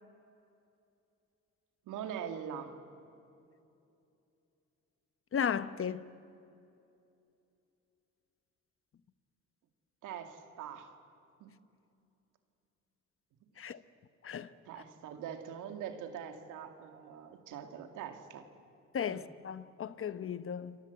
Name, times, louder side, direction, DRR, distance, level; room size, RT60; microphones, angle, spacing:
voice 1, 1.9-2.8 10.0-10.9 11.4-11.5 14.7-18.5 19.1-19.2, right 8 dB, 90° right, 2.4 m, -43 dB
voice 2, 5.3-6.0 13.6-13.8 14.2-14.5 18.9-20.8, left 8 dB, 45° left, 1.0 m, -35 dB
29.0 x 23.0 x 8.3 m
cardioid pair, 90°, 30 cm